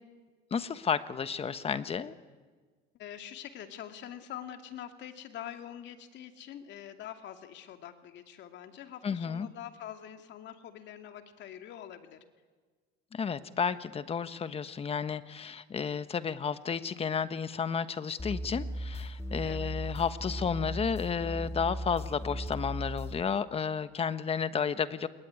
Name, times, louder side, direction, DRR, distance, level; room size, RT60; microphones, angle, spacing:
voice 1, 0.5-2.1 9.0-9.5 13.1-25.1, left 6 dB, 30° left, 12 dB, 1.3 m, -32 dB
voice 2, 2.9-12.2 19.4-19.7, left 10 dB, 60° left, 7 dB, 2.6 m, -45 dB
sound 1, 18.2-23.2, equal, 10° left, 2.9 m, -37 dB
28.0 x 21.5 x 9.7 m, 1.4 s
cardioid pair, 130°, 21 cm